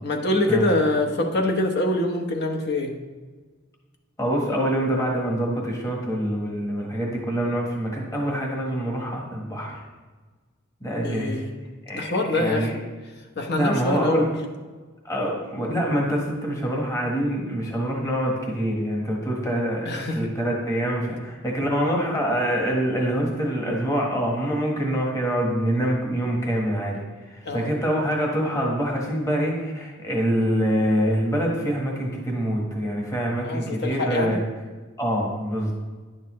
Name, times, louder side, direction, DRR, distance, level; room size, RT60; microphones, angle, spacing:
voice 1, 0.0-2.9 11.0-11.5 11.9-12.7 13.4-14.3 19.8-20.3 27.4-27.7 33.4-34.4, left 2 dB, 55° left, 2 dB, 1.0 m, -24 dB
voice 2, 4.2-9.8 10.8-11.3 11.9-12.0 12.3-12.7 13.6-14.3 15.0-27.0 27.3-34.4 35.0-35.7, equal, 15° left, -1 dB, 1.3 m, -25 dB
10.5 x 6.6 x 3.1 m, 1.4 s
head